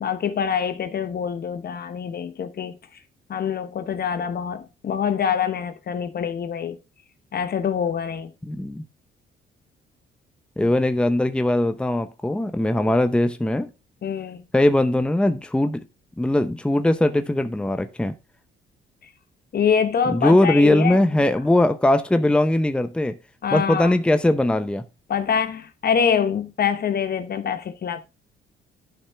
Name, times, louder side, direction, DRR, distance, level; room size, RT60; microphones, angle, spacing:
voice 1, 0.0-2.8 3.3-6.8 7.3-8.3 10.6-10.7 12.8-12.9 14.0-14.4 19.5-21.0 23.4-23.9 25.1-28.0, left 7 dB, 50° left, 1.0 m, -25 dB
voice 2, 8.4-8.8 10.6-13.7 14.5-15.8 16.2-18.1 20.1-23.1 23.5-24.8, left 1 dB, 5° left, 0.7 m, -20 dB
11.5 x 5.6 x 3.4 m
cardioid pair, 90°, 20 cm